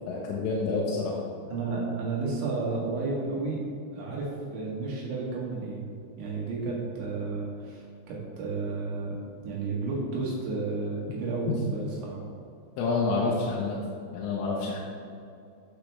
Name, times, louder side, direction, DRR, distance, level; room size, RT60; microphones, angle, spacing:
voice 1, 0.1-1.2 11.5-11.6 12.8-13.8 14.1-14.8, left 4 dB, 90° left, -4 dB, 3.7 m, -28 dB
voice 2, 1.5-3.6 3.9-9.2 9.4-12.2 13.2-13.5, right 3 dB, 75° right, -4 dB, 4.1 m, -32 dB
14.5 x 7.7 x 3.4 m, 2.5 s
omnidirectional pair, 5.5 m